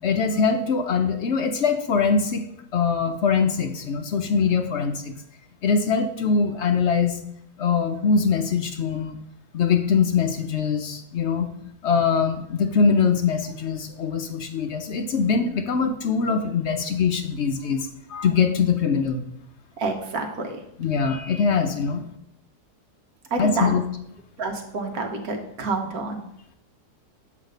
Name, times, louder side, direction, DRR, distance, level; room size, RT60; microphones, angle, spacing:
voice 1, 0.0-2.4 2.7-5.1 5.6-7.2 7.6-9.2 9.5-11.5 11.8-19.2 20.8-22.0 23.4-23.8, left 5 dB, 60° left, 6 dB, 0.7 m, -22 dB
voice 2, 19.8-20.6 23.3-23.7 24.4-26.2, right 3 dB, 65° right, 3 dB, 1.5 m, -28 dB
7.9 x 3.3 x 6.4 m, 0.74 s
omnidirectional pair, 1.7 m